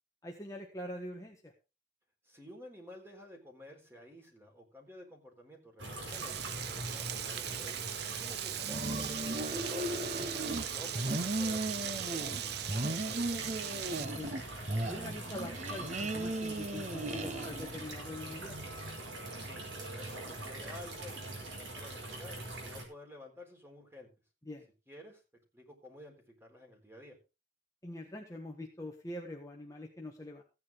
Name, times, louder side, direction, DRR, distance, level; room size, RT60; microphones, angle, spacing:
voice 1, 0.2-1.5 10.2-10.6 14.0-14.4 14.8-18.6 24.4-24.7 27.8-30.4, left 1 dB, 15° left, 0 dB, 1.4 m, -44 dB
voice 2, 2.2-9.9 10.6-13.7 19.4-24.1 24.9-25.2 25.5-26.1 26.4-27.2, left 1 dB, 10° right, 2 dB, 3.9 m, -52 dB
sound 1, 5.8-22.8, right 2 dB, 70° right, 5.3 m, -43 dB
Frying (food), 6.0-14.1, right 12 dB, 55° right, 0.6 m, -39 dB
sound 2, 8.6-10.7 10.9-12.4 12.7-14.4 14.7-17.9, right 1 dB, 35° right, 1.0 m, -36 dB
15.5 x 9.6 x 3.6 m, 0.28 s
head